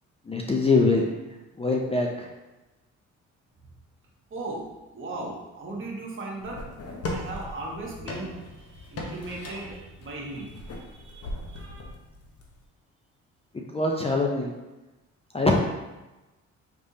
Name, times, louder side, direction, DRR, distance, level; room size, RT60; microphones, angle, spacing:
voice 1, 0.3-1.0 1.6-2.3 13.5-14.5 15.3-15.6, left 3 dB, 20° left, 0 dB, 0.5 m, -23 dB
voice 2, 4.3-6.6 7.1-11.8, right 2 dB, 40° right, -3 dB, 1.3 m, -38 dB
sound 1, 6.4-12.6, left 1 dB, 55° left, 0.9 m, -38 dB
5.1 x 3.4 x 2.7 m, 1.1 s
cardioid pair, 90°, 30 cm